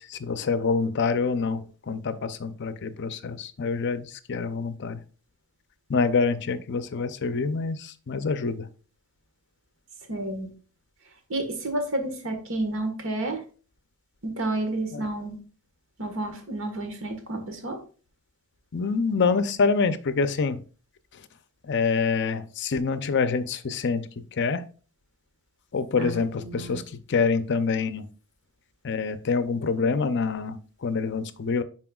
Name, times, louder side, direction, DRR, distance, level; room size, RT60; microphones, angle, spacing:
voice 1, 0.0-5.0 5.9-8.7 14.9-15.1 18.7-20.6 21.6-24.6 25.7-28.1 28.8-31.6, left 4 dB, 55° left, 12 dB, 0.5 m, -26 dB
voice 2, 10.1-10.5 11.3-13.4 14.2-15.4 16.0-17.8 26.0-26.8, right 2 dB, 65° right, 5 dB, 1.4 m, -30 dB
9.7 x 4.3 x 2.3 m, 0.38 s
head